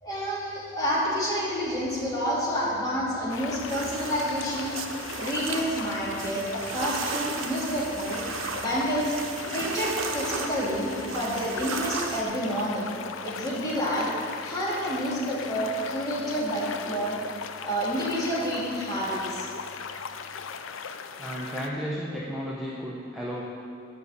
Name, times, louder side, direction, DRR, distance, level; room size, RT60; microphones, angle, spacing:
voice 1, 0.0-4.8 5.1-8.2 8.6-9.2 9.5-12.9 13.2-14.1 14.4-17.2 17.6-19.5, equal, 20° left, -7 dB, 2.3 m, -29 dB
sound 1, 3.3-21.7, left 6 dB, 75° left, 0.4 m, -38 dB
sound 2, 3.7-12.2, right 5 dB, 80° right, 0.7 m, -35 dB
voice 2, 21.2-23.5, equal, ahead, -6 dB, 0.8 m, -33 dB
9.6 x 5.4 x 6.8 m, 2.4 s
head